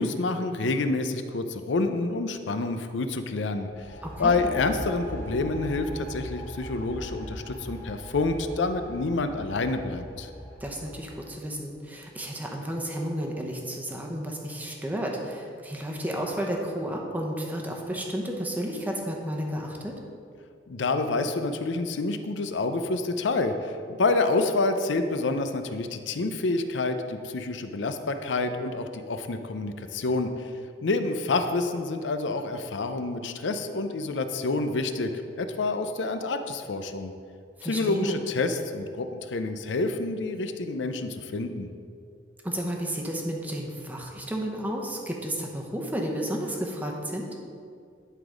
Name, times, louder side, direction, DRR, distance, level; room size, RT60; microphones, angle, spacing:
voice 1, 0.0-10.3 20.7-30.5 30.8-35.1 35.4-37.1 37.6-41.7, left 3 dB, 75° left, 8 dB, 0.5 m, -28 dB
sound 1, 3.7-11.4, equal, 15° left, 1.2 m, -40 dB
voice 2, 4.0-4.5 10.6-20.0 37.6-38.2 42.4-47.3, equal, 10° right, 0 dB, 0.9 m, -32 dB
11.0 x 4.0 x 5.0 m, 2.4 s
head